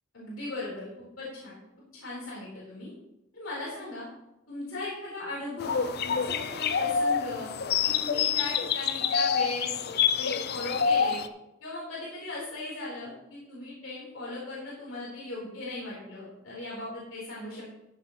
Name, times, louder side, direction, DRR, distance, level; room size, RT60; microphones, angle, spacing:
voice 1, 0.1-1.5 1.9-2.9 3.3-4.1 4.5-7.5 7.8-9.8 10.1-11.2 11.6-17.7, left 2 dB, 85° left, -6 dB, 4.3 m, -38 dB
sound 1, 5.6-11.3, left 7 dB, 50° left, 0.6 m, -27 dB
14.0 x 8.1 x 3.2 m, 0.89 s
head